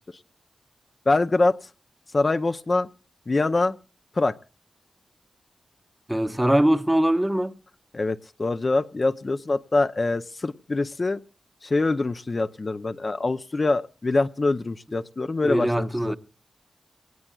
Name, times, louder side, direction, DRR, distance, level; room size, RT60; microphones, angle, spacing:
voice 1, 1.1-1.6 2.1-2.9 3.3-3.8 4.2-4.3 7.9-11.2 11.6-16.1, left 3 dB, 40° left, 0.6 m, -24 dB
voice 2, 6.1-7.6 15.4-16.2, right 1 dB, 10° right, 0.9 m, -22 dB
22.5 x 19.0 x 2.3 m
wide cardioid pair, 75°, 0 cm